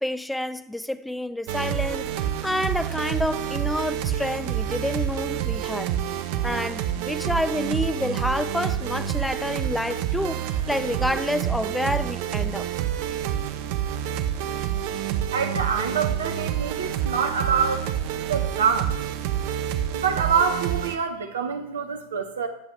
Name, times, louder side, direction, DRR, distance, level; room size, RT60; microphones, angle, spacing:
voice 1, 0.0-6.2 6.4-12.7, left 1 dB, 5° left, 0.5 m, -28 dB
sound 1, 1.5-21.0, right 10 dB, 45° right, 0.9 m, -28 dB
voice 2, 15.3-17.9 18.3-19.0 19.9-22.5, right 6 dB, 65° right, 1.3 m, -25 dB
20.5 x 7.4 x 3.4 m
figure-of-eight pair, 90°, 0 cm